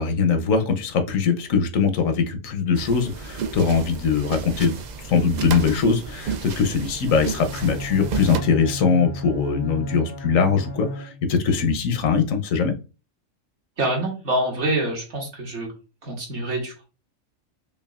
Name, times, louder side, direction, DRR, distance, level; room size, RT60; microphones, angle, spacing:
voice 1, 0.0-4.8 5.0-12.7, left 5 dB, 85° left, 7 dB, 1.1 m, -21 dB
sound 1, 2.7-8.4, right 5 dB, 90° right, 0.3 m, -33 dB
Bowed string instrument, 7.3-11.5, equal, 30° left, 0.5 m, -35 dB
voice 2, 13.8-15.7 16.0-16.8, right 1 dB, 60° right, -1 dB, 1.6 m, -26 dB
5.5 x 2.3 x 2.3 m, 0.33 s
omnidirectional pair, 1.3 m